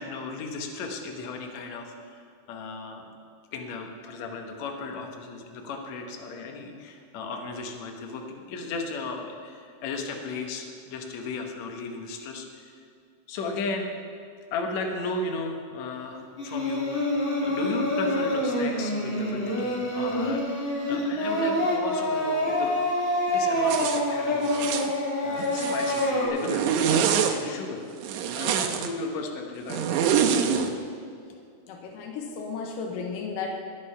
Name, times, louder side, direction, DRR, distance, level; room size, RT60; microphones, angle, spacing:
voice 1, 0.0-3.0 3.5-12.8 13.3-13.9 14.5-22.9 23.3-24.8 25.2-27.9 28.3-30.1, left 3 dB, 65° left, 2 dB, 2.3 m, -35 dB
Singing, 16.4-26.3, left 1 dB, 20° left, 2.3 m, -26 dB
Zipper (clothing), 23.7-24.0 24.5-24.9 25.4-26.1 26.4-27.4 28.0-28.9 29.7-30.7, right 8 dB, 75° right, 2.0 m, -25 dB
voice 2, 31.7-33.6, left 5 dB, 90° left, 2 dB, 2.7 m, -34 dB
19.5 x 6.6 x 5.6 m, 2.4 s
omnidirectional pair, 3.7 m